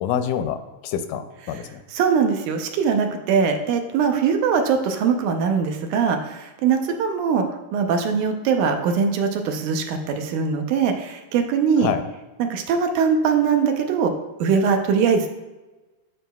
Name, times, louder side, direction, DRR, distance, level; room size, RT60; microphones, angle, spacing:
voice 1, 0.0-1.8 11.8-12.0, left 9 dB, 90° left, 10 dB, 2.1 m, -26 dB
voice 2, 1.9-7.5 7.7-11.9 12.4-14.1 14.4-15.3, right 6 dB, 85° right, 5 dB, 2.2 m, -21 dB
13.0 x 4.8 x 2.3 m, 1.1 s
omnidirectional pair, 3.5 m